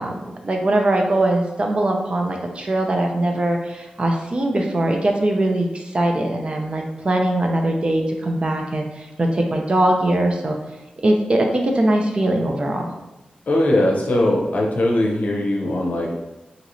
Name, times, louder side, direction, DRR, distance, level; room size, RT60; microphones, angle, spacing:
voice 1, 0.0-10.6 11.0-12.9, right 1 dB, 40° right, 2 dB, 0.4 m, -21 dB
voice 2, 13.5-16.1, left 1 dB, 70° left, -1 dB, 0.6 m, -20 dB
3.0 x 2.8 x 2.6 m, 1.0 s
wide cardioid pair, 100°, 3 cm